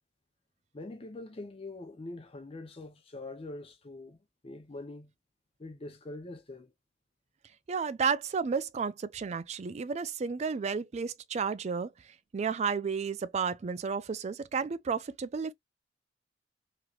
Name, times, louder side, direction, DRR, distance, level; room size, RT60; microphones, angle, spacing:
voice 1, 0.7-4.2 4.4-5.1 5.6-6.7, left 2 dB, 30° left, 0.6 m, -43 dB
voice 2, 7.7-11.9 12.3-15.5, right 5 dB, 35° right, 0.3 m, -32 dB
3.1 x 2.8 x 2.4 m
head